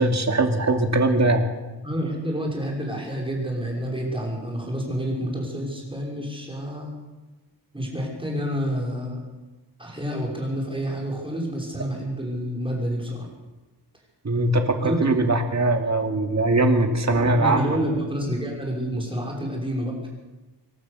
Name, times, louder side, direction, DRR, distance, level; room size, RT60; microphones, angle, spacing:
voice 1, 0.0-1.5 14.2-17.8, right 2 dB, 40° right, 5 dB, 2.5 m, -21 dB
voice 2, 1.8-6.9 7.7-9.2 9.8-13.3 14.8-15.0 17.1-19.9, equal, 10° right, -1 dB, 6.0 m, -28 dB
26.0 x 12.0 x 8.3 m, 1.1 s
wide cardioid pair, 130°, 43 cm